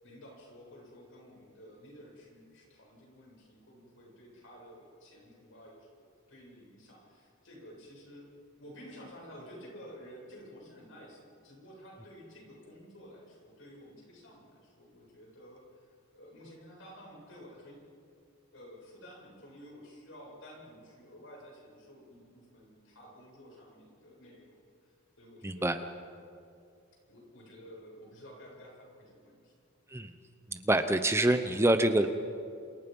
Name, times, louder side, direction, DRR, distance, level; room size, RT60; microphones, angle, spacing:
voice 1, 0.0-17.8 18.5-25.9 27.1-29.5, equal, 60° left, -1 dB, 7.8 m, -52 dB
voice 2, 25.4-25.8 29.9-30.2 30.5-32.1, right 1 dB, 10° right, 8 dB, 0.8 m, -26 dB
28.5 x 28.0 x 5.5 m, 2.5 s
head